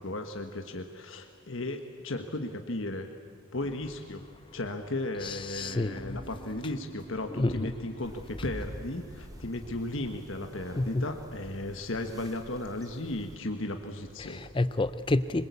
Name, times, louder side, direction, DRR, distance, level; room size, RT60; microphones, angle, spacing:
voice 1, 0.0-3.1 3.5-4.2 4.5-14.4, left 2 dB, 60° left, 5 dB, 1.4 m, -35 dB
voice 2, 5.2-6.2 7.3-7.7 10.8-11.0 14.2-15.5, left 2 dB, 20° left, 13 dB, 0.5 m, -29 dB
Bass guitar, 5.6-11.8, right 7 dB, 85° right, 6.2 m, -54 dB
sound 1, 8.0-13.3, equal, 15° right, 1.0 m, -47 dB
25.5 x 21.5 x 8.4 m, 2.3 s
head